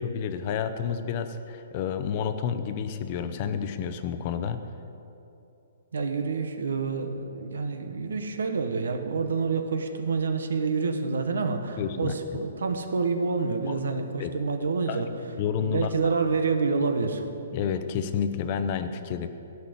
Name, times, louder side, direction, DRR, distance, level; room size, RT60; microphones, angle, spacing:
voice 1, 0.0-4.6 11.8-12.1 13.7-13.8 14.2-14.3 14.9-15.0 15.4-16.1 17.5-19.3, left 7 dB, 35° left, 9 dB, 0.7 m, -30 dB
voice 2, 5.9-15.1 15.6-17.2, right 4 dB, 85° right, 6 dB, 1.2 m, -28 dB
13.0 x 5.8 x 8.6 m, 2.8 s
hypercardioid pair, 160°, 0 cm